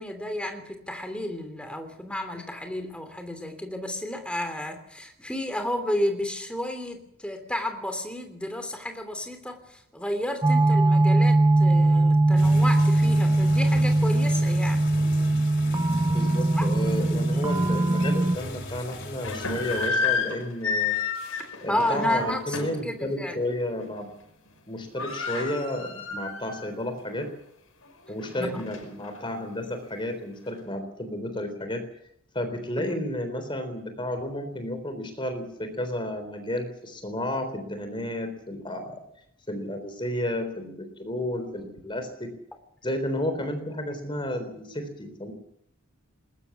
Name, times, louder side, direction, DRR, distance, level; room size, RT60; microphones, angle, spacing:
voice 1, 0.0-14.9 16.2-16.7 21.7-23.4 28.3-28.6 32.8-33.0, left 1 dB, 5° left, 6 dB, 3.1 m, -32 dB
sound 1, 10.4-18.4, right 2 dB, 15° right, 0.7 m, -21 dB
sound 2, 12.4-19.9, left 1 dB, 55° left, 3.3 m, -39 dB
voice 2, 16.1-20.9 21.6-24.1 24.7-27.3 28.1-31.8 32.3-39.0 39.5-42.3 42.8-45.3, left 1 dB, 25° left, 8 dB, 3.8 m, -32 dB
sound 3, 17.3-17.4 18.0-18.1 19.0-22.9 23.3-23.5 23.8-24.2 24.5-24.6 24.8-26.7 27.1-27.2 27.8-29.2, left 5 dB, 80° left, 5.5 m, -31 dB
20.5 x 20.5 x 7.1 m, 0.73 s
head